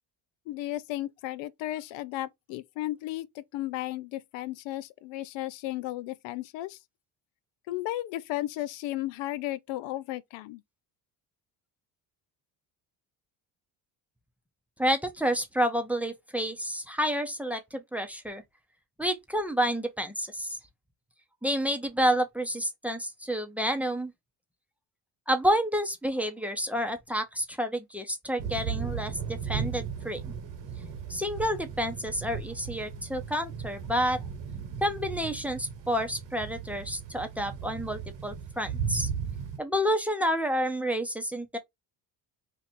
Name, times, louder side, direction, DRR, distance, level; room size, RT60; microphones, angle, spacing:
voice 1, 0.5-6.8 7.7-10.6, left 15 dB, 75° left, 0.5 m, -34 dB
voice 2, 14.8-18.4 19.0-20.6 21.4-24.1 25.3-30.3 31.1-34.2 34.8-39.1 39.6-41.6, equal, 5° right, 0.7 m, -29 dB
sound 1, 28.4-39.6, right 7 dB, 65° right, 1.4 m, -36 dB
2.9 x 2.5 x 4.1 m
supercardioid pair, 80°, 46 cm